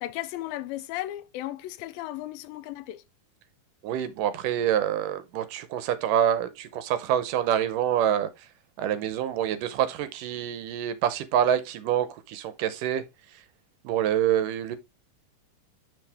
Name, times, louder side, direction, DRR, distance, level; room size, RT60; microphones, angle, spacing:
voice 1, 0.0-3.0, left 15 dB, 90° left, 2.4 m, -35 dB
voice 2, 3.8-8.3 8.8-13.0 13.8-14.8, right 10 dB, 75° right, 2.3 m, -26 dB
7.8 x 6.5 x 3.4 m
omnidirectional pair, 4.1 m